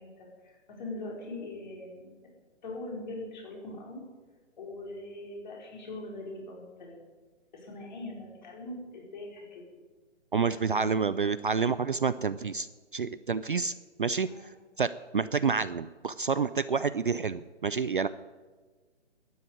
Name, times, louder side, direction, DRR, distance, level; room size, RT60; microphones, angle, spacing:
voice 1, 0.0-2.1 2.6-4.0 4.6-7.0 7.5-9.6 10.5-11.3 14.3-14.5, left 2 dB, 40° left, -1 dB, 4.8 m, -42 dB
voice 2, 10.3-12.7 12.9-13.7 14.0-14.5 14.8-18.1, right 5 dB, 45° right, 14 dB, 0.4 m, -28 dB
12.5 x 9.4 x 9.2 m, 1.4 s
hypercardioid pair, 165°, 36 cm